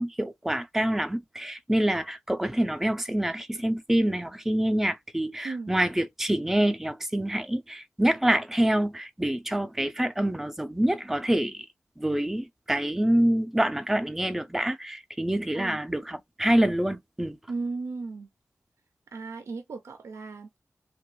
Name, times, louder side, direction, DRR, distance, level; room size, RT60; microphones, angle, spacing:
voice 1, 0.0-11.7 12.0-17.4, right 1 dB, 5° right, 0.4 m, -26 dB
voice 2, 17.5-18.3 19.1-20.6, right 3 dB, 85° right, 0.4 m, -35 dB
3.0 x 2.2 x 3.0 m
wide cardioid pair, 110°, 5 cm